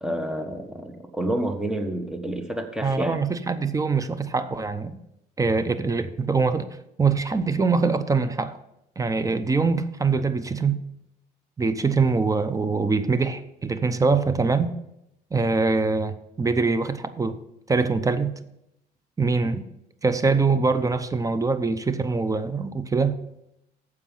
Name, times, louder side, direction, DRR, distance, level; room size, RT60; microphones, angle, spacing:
voice 1, 0.0-3.2, right 1 dB, 5° right, 1.4 m, -29 dB
voice 2, 2.8-5.0 5.4-6.7 7.0-8.6 9.0-10.8 11.6-14.7 15.3-17.4 17.7-18.4 19.2-19.7 20.0-23.2, right 4 dB, 20° right, 0.7 m, -23 dB
14.5 x 4.8 x 5.6 m
cardioid pair, 110°, 17 cm